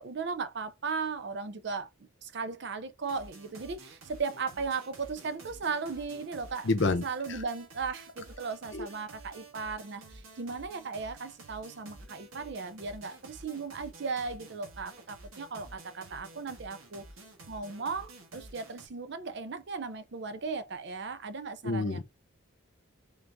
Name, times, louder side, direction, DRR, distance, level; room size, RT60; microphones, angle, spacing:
voice 1, 0.0-1.9 2.2-6.7 7.0-17.1 17.5-22.0, right 4 dB, 55° right, 0.5 m, -36 dB
sound 1, 3.0-18.9, right 2 dB, 90° right, 1.4 m, -51 dB
voice 2, 6.6-7.0 8.7-8.9 21.6-22.0, left 3 dB, 60° left, 0.7 m, -27 dB
3.9 x 3.4 x 2.6 m
head